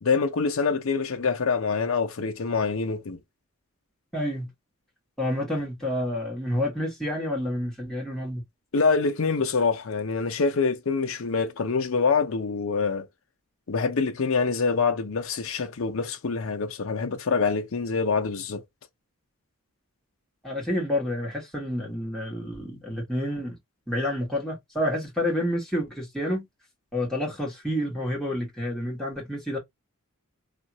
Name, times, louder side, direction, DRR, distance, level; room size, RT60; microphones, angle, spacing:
voice 1, 0.0-3.2 8.7-13.1 13.7-18.6, left 4 dB, 70° left, 0.6 m, -25 dB
voice 2, 4.1-4.5 5.2-8.4 20.4-23.6 23.9-26.5 26.9-29.6, left 1 dB, ahead, 1.3 m, -29 dB
2.7 x 2.4 x 2.8 m
head